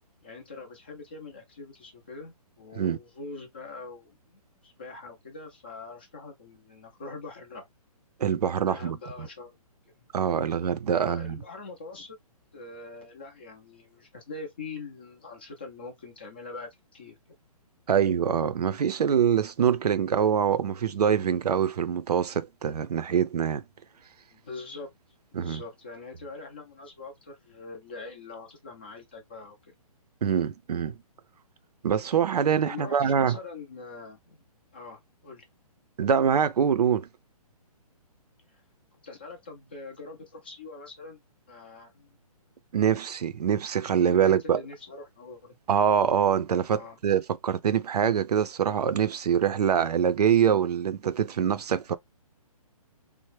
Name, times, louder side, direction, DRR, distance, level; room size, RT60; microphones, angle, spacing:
voice 1, 0.2-7.6 8.6-9.5 9.9-10.1 10.9-12.2 12.5-17.2 24.3-24.9 25.3-29.7 32.6-34.4 34.7-35.4 38.5-38.6 39.0-41.2 41.5-42.2 44.0-45.6 46.7-47.0, left 3 dB, 15° left, 0.4 m, -43 dB
voice 2, 8.2-9.3 10.1-11.4 17.9-23.6 25.3-25.6 30.2-31.0 31.8-33.4 36.0-37.1 42.7-44.6 45.7-51.9, right 8 dB, 85° right, 0.5 m, -24 dB
3.3 x 2.1 x 3.1 m
hypercardioid pair, 170°, 20 cm